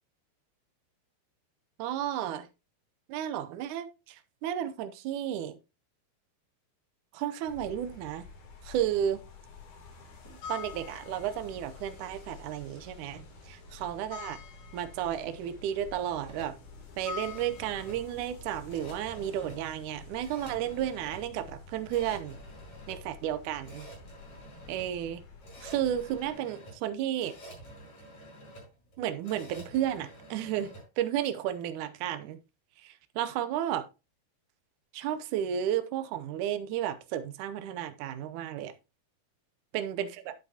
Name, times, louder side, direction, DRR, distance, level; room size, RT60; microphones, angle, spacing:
voice 1, 1.8-2.5 3.1-5.6 7.1-8.3 8.6-9.2 10.3-14.4 14.7-16.5 17.0-22.4 22.9-23.9 24.7-25.2 25.6-27.4 29.0-32.4 32.8-33.8 34.9-38.7 39.7-40.3, right 10 dB, 85° right, 1.7 m, -33 dB
sound 1, 7.4-26.3, left 5 dB, 70° left, 4.3 m, -47 dB
sound 2, 16.2-30.9, right 1 dB, 45° left, 6.3 m, -50 dB
10.5 x 8.1 x 2.8 m
omnidirectional pair, 4.5 m